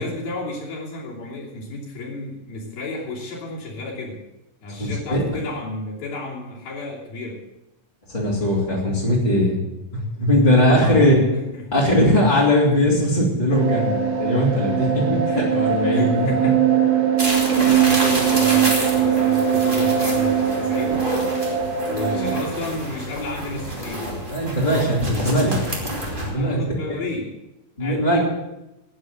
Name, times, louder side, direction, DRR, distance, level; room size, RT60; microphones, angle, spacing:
voice 1, 0.0-4.2 4.6-7.4 10.7-11.7 15.9-16.6 17.2-21.1 21.9-24.1 26.4-27.3 27.8-28.2, left 2 dB, 80° left, -5 dB, 4.8 m, -32 dB
voice 2, 4.8-5.2 8.1-9.6 9.9-11.2 11.7-16.3 22.0-22.3 24.3-25.6 26.3-26.6 27.8-28.2, left 1 dB, 15° left, -6 dB, 2.6 m, -19 dB
sound 1, 13.5-22.4, right 8 dB, 55° right, 1.8 m, -21 dB
sound 2, 17.2-26.3, right 1 dB, 15° right, 2.4 m, -28 dB
11.0 x 9.9 x 7.9 m, 0.94 s
omnidirectional pair, 4.1 m